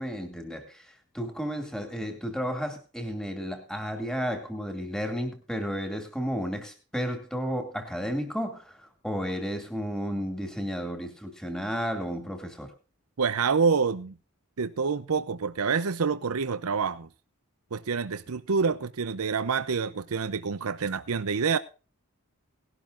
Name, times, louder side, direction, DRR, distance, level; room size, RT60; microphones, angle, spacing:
voice 1, 0.0-12.7, equal, 5° left, 2.5 m, -33 dB
voice 2, 13.2-14.1 14.6-17.1 17.7-21.6, right 5 dB, 75° right, 0.6 m, -27 dB
19.0 x 12.0 x 2.6 m
head